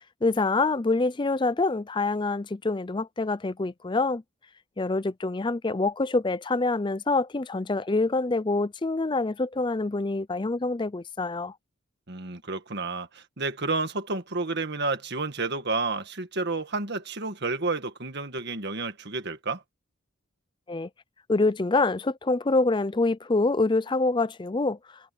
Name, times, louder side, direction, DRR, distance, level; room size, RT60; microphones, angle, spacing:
voice 1, 0.2-4.2 4.8-11.5 20.7-20.9 21.3-24.8, left 3 dB, 20° left, 0.5 m, -26 dB
voice 2, 12.1-19.6, right 3 dB, 50° right, 1.8 m, -30 dB
head